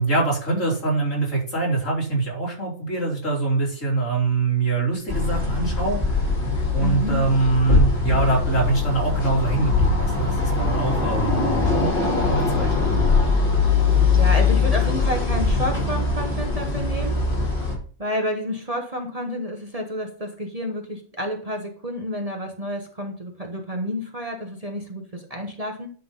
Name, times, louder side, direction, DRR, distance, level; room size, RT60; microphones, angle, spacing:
voice 1, 0.0-6.2 6.7-11.8 12.3-13.2, right 3 dB, 65° left, -3 dB, 3.6 m, -24 dB
sound 1, 5.1-17.7, left 4 dB, 40° left, 2.6 m, -21 dB
voice 2, 6.8-7.2 14.1-17.2 18.0-25.9, equal, 30° right, 2 dB, 1.2 m, -30 dB
10.5 x 3.8 x 5.4 m, 0.42 s
omnidirectional pair, 1.4 m